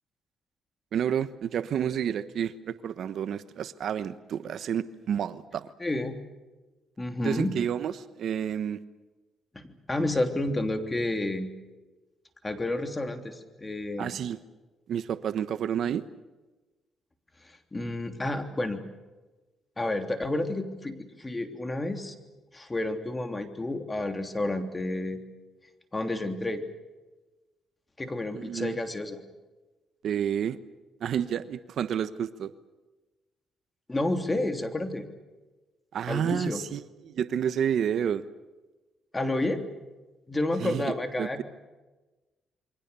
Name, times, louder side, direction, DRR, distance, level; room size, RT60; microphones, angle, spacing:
voice 1, 0.9-5.7 7.2-8.8 14.0-14.4 14.9-16.0 28.3-28.8 30.0-30.6 31.0-32.5 35.9-38.2 40.6-41.4, right 9 dB, 65° right, 13 dB, 1.1 m, -30 dB
voice 2, 5.8-6.2 7.0-7.5 9.5-11.5 12.4-14.1 17.4-18.8 19.8-22.1 22.5-25.2 25.9-26.6 28.0-29.2 33.9-35.1 36.1-36.6 39.1-39.6 40.3-41.4, left 2 dB, 20° left, 6 dB, 3.2 m, -30 dB
28.5 x 23.5 x 7.0 m, 1.2 s
cardioid pair, 90°, 0 cm